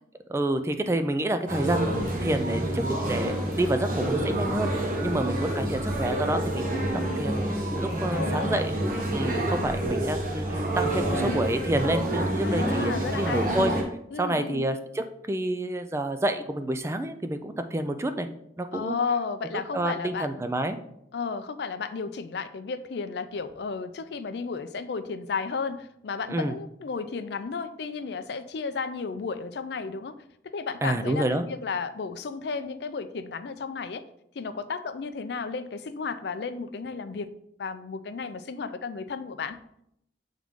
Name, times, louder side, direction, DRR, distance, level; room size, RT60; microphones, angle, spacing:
voice 1, 0.3-1.9 2.2-4.7 5.0-6.8 7.2-8.7 9.1-13.7 14.2-18.3 18.6-19.0 19.7-20.8 26.3-26.5 30.8-31.4, right 1 dB, 15° right, 9 dB, 0.3 m, -28 dB
sound 1, 1.5-13.8, right 1 dB, 45° right, 1.1 m, -28 dB
voice 2, 8.1-8.6 12.4-13.6 14.1-14.6 18.7-20.4 21.1-30.2 30.4-34.0 34.3-37.3 37.6-39.6, left 5 dB, 65° left, 11 dB, 0.4 m, -33 dB
7.3 x 3.7 x 3.6 m, 0.76 s
head